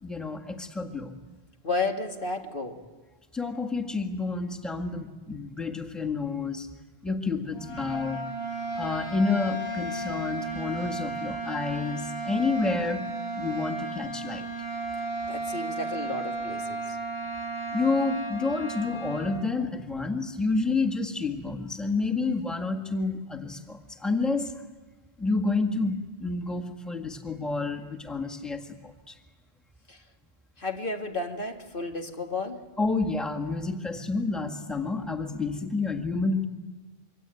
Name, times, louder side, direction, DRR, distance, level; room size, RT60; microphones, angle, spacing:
voice 1, 0.0-1.1 3.3-6.7 7.0-8.2 8.8-13.0 13.4-14.5 17.7-24.5 25.2-29.2 32.8-36.4, left 3 dB, ahead, 2 dB, 1.7 m, -29 dB
voice 2, 1.6-2.8 15.3-17.0 29.9-30.0 30.6-32.6, left 3 dB, 60° left, 3 dB, 2.4 m, -32 dB
sound 1, 7.5-19.3, right 2 dB, 75° left, 8.5 m, -34 dB
27.0 x 23.5 x 9.2 m, 1.3 s
omnidirectional pair, 1.0 m